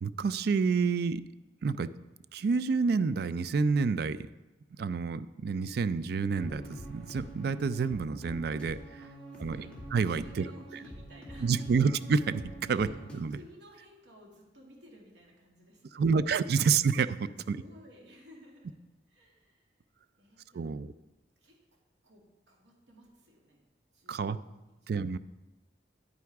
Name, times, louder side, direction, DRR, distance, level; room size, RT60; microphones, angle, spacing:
voice 1, 0.0-1.2 1.6-1.9 2.3-4.2 4.8-9.0 9.4-9.6 9.9-10.5 11.4-13.4 15.9-17.6 20.5-20.9 24.1-24.4 24.9-25.2, right 5 dB, 60° right, 15 dB, 0.4 m, -28 dB
sound 1, 6.3-13.2, right 1 dB, 5° left, 2.2 m, -46 dB
voice 2, 9.0-9.8 10.2-11.8 12.7-13.0 13.3-16.6 17.5-18.8 19.1-19.8 20.2-20.7 21.4-23.7 23.9-25.2, equal, 85° right, -1 dB, 2.3 m, -56 dB
9.7 x 9.4 x 3.5 m, 1.0 s
head